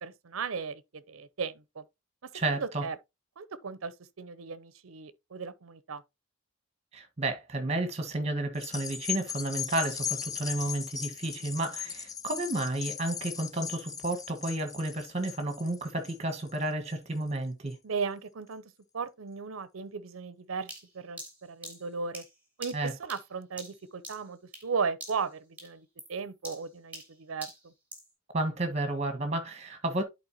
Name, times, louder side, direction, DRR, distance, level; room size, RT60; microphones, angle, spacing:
voice 1, 0.0-1.8 2.5-3.0 3.4-6.0 17.8-18.6 18.9-22.2 22.6-27.7, right 5 dB, 80° right, 0.6 m, -36 dB
voice 2, 2.3-2.8 6.9-17.7 22.7-22.9 28.3-30.0, right 2 dB, 30° right, 1.5 m, -32 dB
sound 1, 8.5-17.2 17.7-17.8, left 8 dB, 15° left, 0.4 m, -38 dB
sound 2, 20.7-24.7 25.0-25.3 25.6-28.1, right 2 dB, 5° right, 2.7 m, -46 dB
11.0 x 4.4 x 2.9 m
head